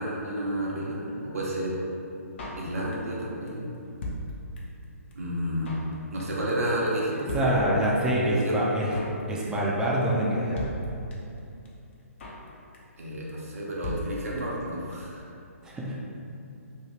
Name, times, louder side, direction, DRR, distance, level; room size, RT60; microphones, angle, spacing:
voice 1, 0.0-1.8 2.6-3.8 5.2-5.7 6.1-7.8 8.2-8.6 13.0-15.2, right 1 dB, 70° right, -4 dB, 0.7 m, -31 dB
Drum kit, 2.4-3.2 3.5-3.6 3.7-4.8 5.1-5.2 5.4-5.9 6.2-6.5 6.7-6.8 7.0-7.1 7.3-8.1 8.4-8.5 8.7-9.2 9.5-9.8 10.0-10.1 10.3-10.4 10.6-11.4 11.7-11.8 11.9-12.5 12.7-13.0 13.3-13.4 13.6-13.7 13.8-14.7 14.9-15.0 15.2-15.3, left 1 dB, 50° left, 0.6 m, -37 dB
voice 2, 7.3-8.9 9.3-10.7 15.6-16.0, right 1 dB, 10° right, -5 dB, 0.3 m, -26 dB
2.8 x 2.7 x 3.1 m, 2.7 s
hypercardioid pair, 140°, 8 cm